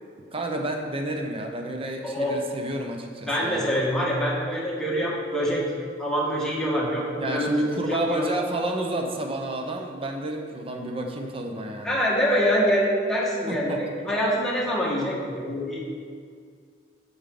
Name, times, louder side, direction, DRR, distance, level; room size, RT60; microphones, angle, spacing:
voice 1, 0.3-3.7 7.2-12.0 13.5-13.8, right 1 dB, 30° right, 3 dB, 0.8 m, -30 dB
voice 2, 2.0-2.4 3.3-5.6 6.0-8.3 11.8-15.8, equal, 5° left, -6 dB, 1.7 m, -25 dB
8.5 x 7.1 x 3.8 m, 2.1 s
head